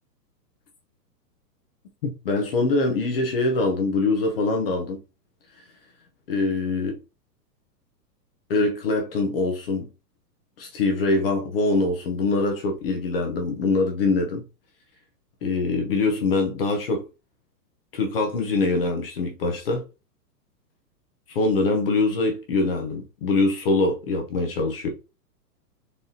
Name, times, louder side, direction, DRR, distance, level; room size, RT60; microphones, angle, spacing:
voice 1, 2.0-5.0 6.3-7.0 8.5-9.9 10.6-14.4 15.4-17.0 17.9-19.8 21.3-24.9, left 3 dB, 35° left, 0.8 m, -23 dB
4.1 x 3.3 x 2.7 m
hypercardioid pair, 170°, 50 cm